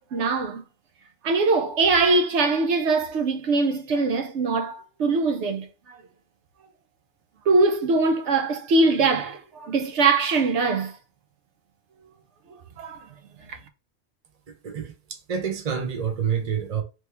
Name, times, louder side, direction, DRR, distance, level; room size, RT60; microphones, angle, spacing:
voice 1, 0.1-0.6 1.2-6.0 7.5-11.0 12.8-13.1 13.5-13.6, right 3 dB, 75° right, 1.0 m, -22 dB
voice 2, 14.5-16.8, right 7 dB, 40° right, 0.8 m, -28 dB
3.1 x 3.1 x 3.3 m
omnidirectional pair, 1.2 m